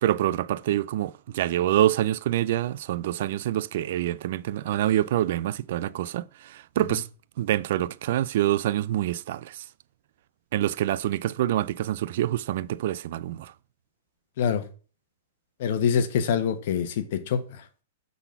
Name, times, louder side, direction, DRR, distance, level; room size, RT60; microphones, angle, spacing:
voice 1, 0.0-6.3 6.5-7.0 7.4-9.6 10.5-13.5, right 13 dB, 60° right, 0.3 m, -26 dB
voice 2, 15.6-17.4, left 7 dB, 60° left, 1.2 m, -25 dB
7.0 x 4.0 x 5.8 m
hypercardioid pair, 150°, 0 cm